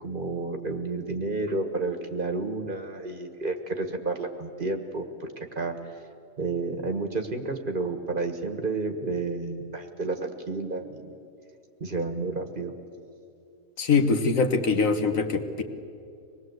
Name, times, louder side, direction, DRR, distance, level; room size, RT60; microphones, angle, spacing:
voice 1, 0.0-5.7 6.4-11.1 11.8-12.7, right 3 dB, 40° right, 6 dB, 1.5 m, -31 dB
voice 2, 13.8-15.6, left 4 dB, 75° left, 6 dB, 1.7 m, -23 dB
25.0 x 19.5 x 7.9 m, 2.5 s
omnidirectional pair, 1.4 m